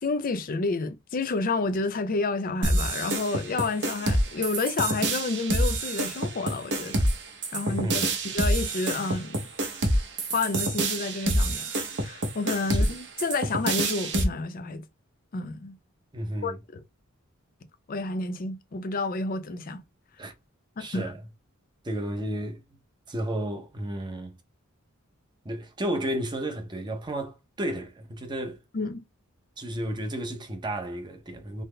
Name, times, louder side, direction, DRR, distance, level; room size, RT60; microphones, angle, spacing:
voice 1, 0.0-7.1 7.5-8.1 8.3-9.4 10.3-11.6 12.0-14.8 15.3-15.8 16.4-16.5 17.9-19.8 20.8-21.1 28.7-29.0, left 3 dB, 40° left, 0.5 m, -30 dB
sound 1, 2.6-14.2, right 1 dB, 55° right, 0.8 m, -27 dB
voice 2, 7.7-8.0 12.7-12.8 16.1-16.6 20.2-20.3 20.8-21.2 21.8-22.8 23.1-24.3 25.4-28.6 29.6-31.6, right 1 dB, 20° right, 0.6 m, -32 dB
3.8 x 2.0 x 3.2 m
head